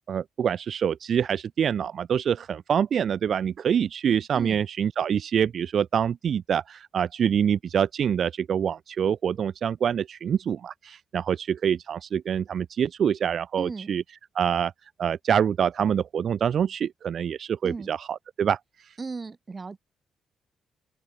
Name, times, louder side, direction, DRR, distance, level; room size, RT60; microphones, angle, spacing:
voice 1, 0.1-14.0 14.4-14.7 15.0-18.9, right 8 dB, 60° right, 0.3 m, -26 dB
voice 2, 13.6-13.9 17.6-17.9 19.0-19.8, right 4 dB, 30° right, 1.0 m, -35 dB
open air
cardioid pair, 85°, 0 cm